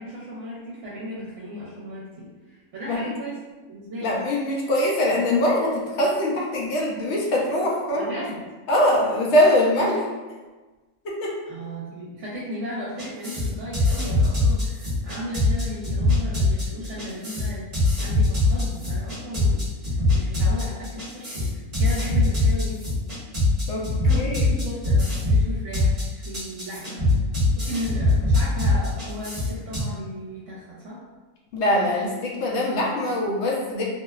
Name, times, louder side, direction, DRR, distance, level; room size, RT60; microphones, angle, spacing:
voice 1, 0.0-3.4 3.7-4.1 7.9-8.4 11.5-22.9 24.0-27.0 27.6-31.0, equal, 65° right, -7 dB, 0.9 m, -35 dB
voice 2, 4.0-8.1 8.7-10.1 11.0-11.3 23.7-24.4 31.5-33.8, left 1 dB, 65° left, -3 dB, 0.7 m, -23 dB
sound 1, 13.0-29.8, left 2 dB, 30° right, 0.9 m, -22 dB
2.8 x 2.0 x 2.3 m, 1.3 s
omnidirectional pair, 1.5 m